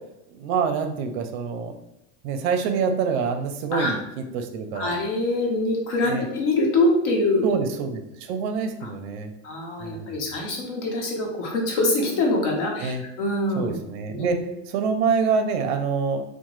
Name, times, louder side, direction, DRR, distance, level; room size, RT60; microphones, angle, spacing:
voice 1, 0.3-1.7 2.2-4.0 4.3-4.9 6.1-6.3 7.4-9.3 9.8-10.2 12.8-13.0 13.6-14.4 14.7-16.2, right 5 dB, 55° right, 6 dB, 0.5 m, -26 dB
voice 2, 4.7-7.4 8.8-8.9 9.4-12.9 13.2-13.8 14.1-14.3, left 2 dB, 65° left, 0 dB, 0.9 m, -24 dB
2.9 x 2.1 x 3.0 m, 0.85 s
supercardioid pair, 150°, 38 cm